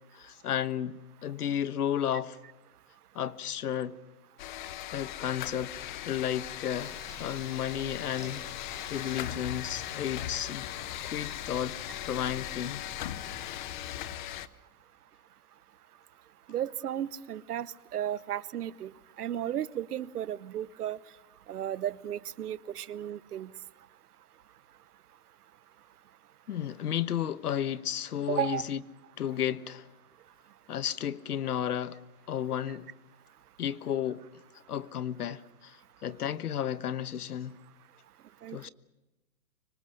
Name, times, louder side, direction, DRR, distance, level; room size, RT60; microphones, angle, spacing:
voice 1, 0.1-2.4 3.1-4.0 4.9-5.8 6.0-10.7 11.0-11.8 12.0-12.8 26.5-28.8 29.2-29.9 30.7-32.0 32.3-32.9 33.6-34.2 34.7-37.6 38.5-38.7, left 10 dB, 80° left, 1.3 m, -33 dB
sound 1, 4.4-14.5, left 13 dB, 30° left, 0.8 m, -39 dB
sound 2, 6.8-14.2, left 1 dB, 10° left, 4.1 m, -50 dB
voice 2, 16.5-18.9 19.2-21.0 21.5-23.5 28.3-28.6 38.4-38.7, right 11 dB, 80° right, 1.0 m, -34 dB
25.0 x 24.5 x 6.6 m
hypercardioid pair, 155°, 45 cm